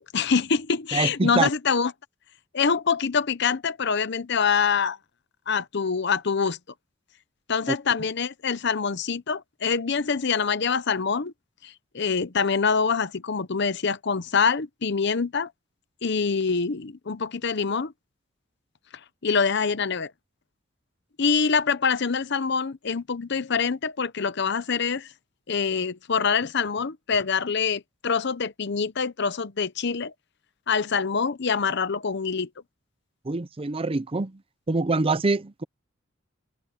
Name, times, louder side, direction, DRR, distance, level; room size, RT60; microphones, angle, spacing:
voice 1, 0.1-1.9 2.5-5.0 5.5-6.6 7.5-11.3 11.6-15.5 16.0-17.9 19.2-20.1 21.2-25.1 25.5-30.1 30.7-32.5, left 5 dB, 60° left, 0.8 m, -25 dB
voice 2, 0.9-1.5 7.7-7.8 33.2-34.4 34.7-35.6, right 3 dB, 30° right, 0.6 m, -25 dB
open air
head